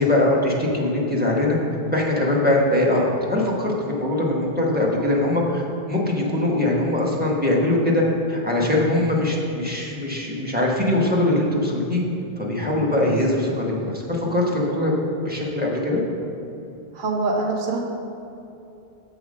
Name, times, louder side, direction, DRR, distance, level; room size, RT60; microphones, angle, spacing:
voice 1, 0.0-1.6 1.9-8.0 8.3-12.0 12.4-15.0 15.2-16.0, left 1 dB, 10° right, -3 dB, 1.0 m, -22 dB
voice 2, 16.9-17.8, right 3 dB, 55° right, 0 dB, 1.1 m, -25 dB
6.9 x 4.1 x 6.4 m, 2.8 s
omnidirectional pair, 1.0 m